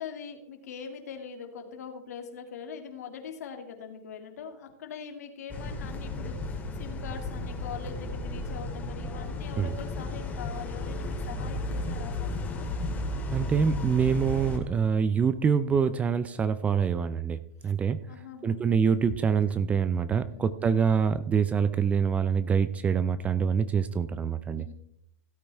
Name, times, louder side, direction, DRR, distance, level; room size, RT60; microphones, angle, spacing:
voice 1, 0.0-12.7 17.6-17.7 18.1-18.6 20.3-20.7 24.5-24.7, left 7 dB, 80° left, 4 dB, 2.3 m, -42 dB
sound 1, 5.5-14.6, left 2 dB, 20° left, 2.2 m, -34 dB
voice 2, 13.3-18.0 18.4-24.7, right 6 dB, 15° right, 14 dB, 0.4 m, -25 dB
16.5 x 9.0 x 3.5 m, 0.75 s
hypercardioid pair, 140°, 8 cm